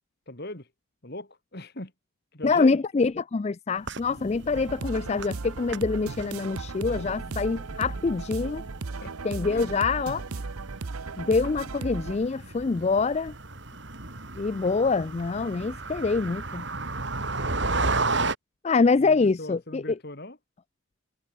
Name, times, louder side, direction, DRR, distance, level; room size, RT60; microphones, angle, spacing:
voice 1, 0.3-0.7 1.0-1.9 2.3-2.8 6.9-7.0 7.3-7.4 9.0-9.1 9.5-9.7 19.0-20.4, left 1 dB, 45° left, 2.9 m, -40 dB
voice 2, 2.4-8.6 9.2-10.3 11.2-13.3 14.4-16.6 18.6-20.0, left 4 dB, 30° left, 0.3 m, -25 dB
sound 1, 3.8-18.4, right 3 dB, 55° right, 3.2 m, -34 dB
sound 2, 4.5-12.2, right 3 dB, 85° right, 0.9 m, -36 dB
head